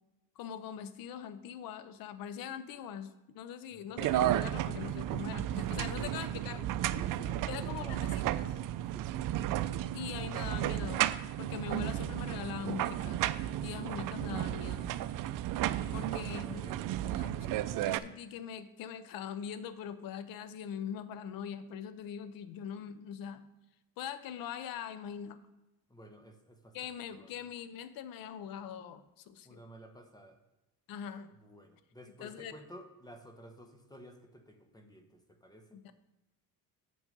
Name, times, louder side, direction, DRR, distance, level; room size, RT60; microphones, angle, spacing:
voice 1, 0.4-6.8 7.5-8.1 8.5-8.6 9.9-11.0 11.4-13.2 13.6-15.0 15.9-16.6 17.2-17.3 17.8-23.4 24.0-25.4 26.7-29.6 30.9-31.3 32.2-32.5 35.7-35.9, left 8 dB, 70° left, 12 dB, 0.7 m, -42 dB
voice 2, 3.7-4.2 5.8-6.1 6.9-8.1 8.9-9.3 15.6-17.7 25.9-26.8 27.1-27.4 29.4-30.4 31.4-35.8, equal, 10° left, 5 dB, 1.0 m, -53 dB
sound 1, 4.0-18.0, right 13 dB, 65° right, 0.5 m, -33 dB
7.9 x 6.2 x 5.3 m, 0.99 s
cardioid pair, 120°, 36 cm